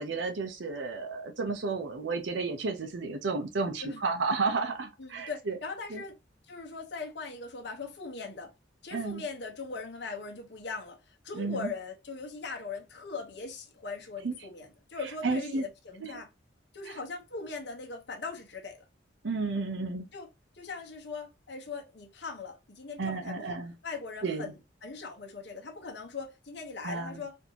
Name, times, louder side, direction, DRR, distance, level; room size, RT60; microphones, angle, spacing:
voice 1, 0.0-5.6 5.9-6.0 8.9-9.2 11.3-11.7 14.2-14.3 15.2-15.6 16.9-17.0 19.2-20.1 23.0-23.7 24.2-24.5 26.8-27.2, right 4 dB, 75° right, 0.6 m, -32 dB
voice 2, 5.0-6.1 6.5-8.5 8.8-16.3 16.7-18.8 20.1-20.3 20.5-23.6 23.8-27.4, left 4 dB, 65° left, 1.0 m, -40 dB
4.3 x 2.7 x 2.8 m
head